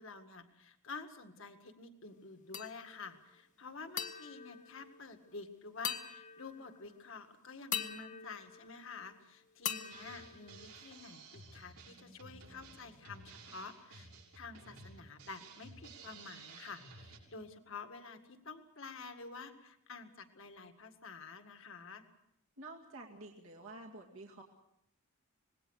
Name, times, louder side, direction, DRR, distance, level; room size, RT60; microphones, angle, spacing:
voice 1, 0.0-14.1 14.3-22.0, left 4 dB, 60° left, 7 dB, 1.8 m, -49 dB
sound 1, 2.5-3.1 4.0-5.4 5.8-6.9 7.7-9.2 9.7-11.1, left 8 dB, 35° left, 0.8 m, -43 dB
Drum kit, 9.9-17.2, right 3 dB, 85° right, 6.7 m, -54 dB
voice 2, 22.6-24.4, right 2 dB, 70° right, 0 dB, 2.3 m, -50 dB
25.5 x 20.0 x 6.5 m, 0.77 s
head